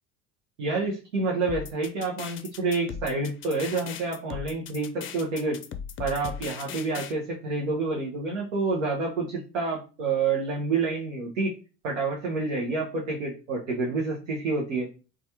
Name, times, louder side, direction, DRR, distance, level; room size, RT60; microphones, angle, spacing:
voice 1, 0.6-5.6 6.0-11.5 11.8-14.9, right 3 dB, 90° right, -3 dB, 0.7 m, -28 dB
sound 1, 1.5-7.1, left 7 dB, 35° left, 0.4 m, -38 dB
3.1 x 2.3 x 2.8 m, 0.34 s
hypercardioid pair, 65°, 36 cm